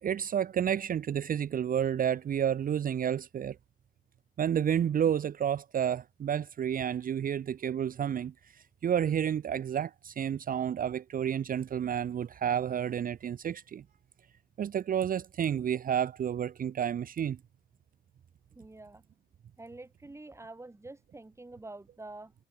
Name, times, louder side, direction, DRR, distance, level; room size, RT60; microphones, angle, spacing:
voice 1, 0.0-3.6 4.4-13.8 14.6-17.4, right 9 dB, 50° right, 0.7 m, -30 dB
voice 2, 18.5-19.0 19.6-22.3, right 2 dB, 15° right, 2.3 m, -47 dB
cardioid pair, 75°, 19 cm